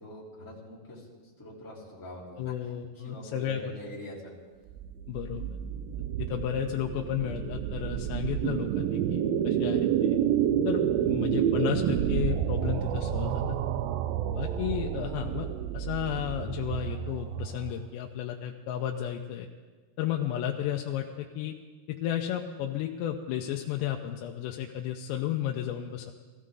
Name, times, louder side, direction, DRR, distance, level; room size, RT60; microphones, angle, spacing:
voice 1, 0.0-2.5 2.9-4.3 14.4-14.5, left 1 dB, 5° left, -6 dB, 2.5 m, -44 dB
voice 2, 2.4-3.6 5.1-5.6 6.2-10.2 10.7-13.6 14.3-15.5 15.7-19.5 20.0-21.6 21.9-26.1, left 11 dB, 85° left, 2 dB, 2.8 m, -33 dB
sound 1, 4.7-17.9, right 10 dB, 85° right, 2.0 m, -29 dB
19.0 x 14.5 x 3.8 m, 1.5 s
omnidirectional pair, 5.0 m